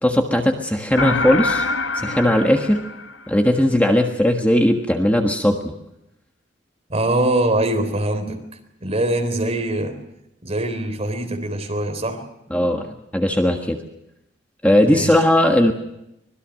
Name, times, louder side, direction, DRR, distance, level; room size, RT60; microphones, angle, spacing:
voice 1, 0.0-1.7 1.9-2.8 3.3-5.7 12.5-13.8 14.6-15.7, left 1 dB, 10° left, 2 dB, 1.5 m, -18 dB
sound 1, 1.0-3.6, left 3 dB, 80° left, 1.1 m, -25 dB
voice 2, 6.9-8.4 8.8-10.0 10.4-12.2 14.8-15.1, right 1 dB, 35° right, 5 dB, 3.8 m, -23 dB
25.0 x 21.0 x 6.4 m, 0.85 s
head